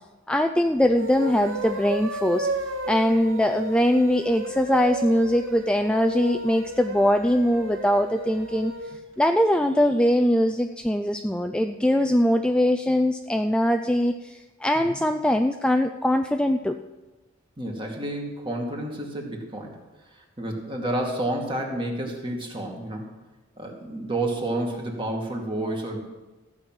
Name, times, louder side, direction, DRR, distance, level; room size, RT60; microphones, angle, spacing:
voice 1, 0.3-2.5 2.9-8.7 9.2-16.8, equal, 5° left, 6 dB, 0.4 m, -22 dB
sound 1, 0.9-9.0, right 1 dB, 85° right, 1.3 m, -33 dB
voice 2, 17.6-19.8 20.4-23.1 23.6-26.0, right 1 dB, 25° right, 0 dB, 2.3 m, -30 dB
14.5 x 6.1 x 9.0 m, 1.1 s
head